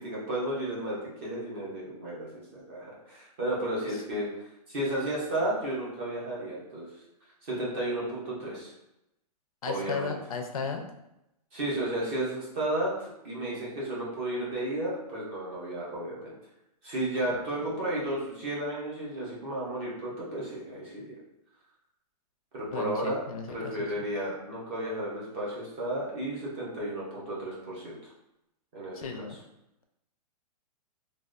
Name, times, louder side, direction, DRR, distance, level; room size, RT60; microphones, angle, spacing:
voice 1, 0.0-6.9 7.4-8.7 9.7-10.1 11.5-16.3 16.8-21.1 22.5-23.2 23.5-28.1 28.7-29.3, right 1 dB, 15° right, -5 dB, 0.4 m, -33 dB
voice 2, 9.6-10.8 22.7-24.0 28.9-29.4, left 5 dB, 60° left, 4 dB, 0.5 m, -35 dB
3.3 x 2.3 x 2.4 m, 0.87 s
hypercardioid pair, 175°, 21 cm